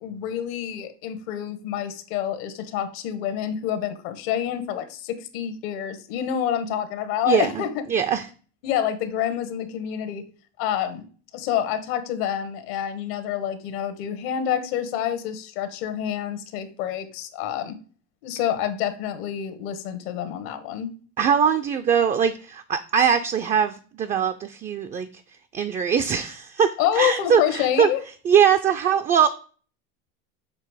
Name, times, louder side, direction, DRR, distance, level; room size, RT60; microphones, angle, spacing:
voice 1, 0.0-7.8 8.6-10.2 10.6-11.1 11.3-17.8 18.2-20.9 26.8-28.0, left 10 dB, 75° left, 10 dB, 1.1 m, -27 dB
voice 2, 7.3-7.6 7.9-8.3 21.2-25.1 25.5-27.9 28.2-29.3, right 7 dB, 25° right, 9 dB, 0.3 m, -21 dB
6.8 x 2.9 x 4.7 m, 0.39 s
supercardioid pair, 120°, 32 cm